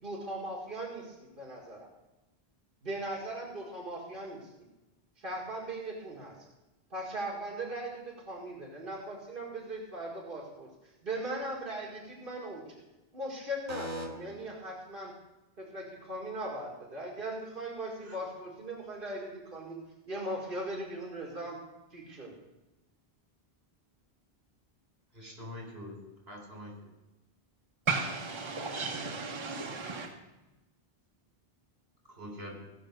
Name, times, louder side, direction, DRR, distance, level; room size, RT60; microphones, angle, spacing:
voice 1, 0.0-1.9 2.8-4.5 5.2-6.4 6.9-10.7 11.0-12.8 13.1-15.1 15.6-19.8 20.1-21.6 21.9-22.3, right 1 dB, 60° right, -3 dB, 2.3 m, -39 dB
voice 2, 13.7-14.0 18.0-18.2 25.1-26.0 26.3-26.9 32.1-32.6, equal, 75° right, -1 dB, 4.2 m, -42 dB
voice 3, 27.9-30.1, right 4 dB, 30° right, 2 dB, 1.1 m, -34 dB
17.0 x 5.8 x 6.5 m, 1.0 s
omnidirectional pair, 1.0 m